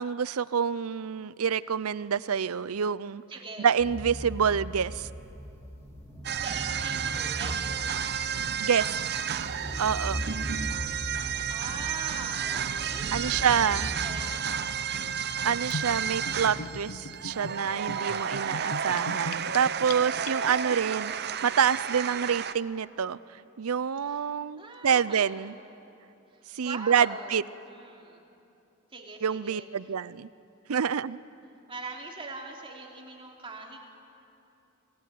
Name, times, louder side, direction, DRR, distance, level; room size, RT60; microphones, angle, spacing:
voice 1, 0.0-3.2 3.6-5.1 8.6-9.2 9.8-10.2 13.1-13.9 15.4-23.2 23.6-25.5 26.5-27.4 29.2-30.3 30.7-31.2, right 7 dB, 85° right, 18 dB, 0.6 m, -27 dB
voice 2, 3.3-3.7 6.4-7.8 11.5-14.6 18.4-19.0 20.8-21.2 24.0-24.3 24.6-25.4 26.3-28.2 28.9-29.7 31.7-33.8, right 3 dB, 25° right, 0 dB, 3.0 m, -42 dB
sound 1, 3.8-14.1, equal, 15° left, 3.6 m, -39 dB
sound 2, 6.2-22.5, right 8 dB, 50° right, 0.7 m, -32 dB
Gurgling / Bathtub (filling or washing), 15.7-20.7, left 2 dB, 85° left, 0.9 m, -39 dB
28.5 x 18.0 x 9.3 m, 2.8 s
head